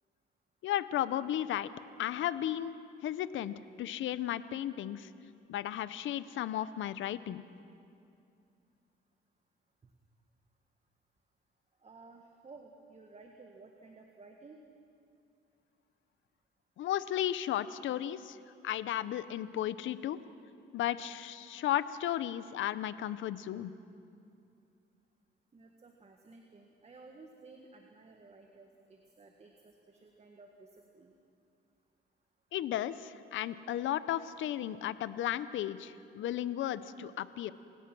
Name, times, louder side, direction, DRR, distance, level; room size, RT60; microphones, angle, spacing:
voice 1, 0.6-1.7 2.0-5.1 5.5-7.4 16.8-18.4 18.6-20.2 20.7-23.7 32.5-37.5, left 12 dB, 75° left, 15 dB, 0.8 m, -34 dB
voice 2, 11.8-14.6 25.5-31.1, right 3 dB, 30° right, 2 dB, 1.8 m, -55 dB
28.0 x 17.5 x 6.2 m, 2.6 s
cardioid pair, 90°, 20 cm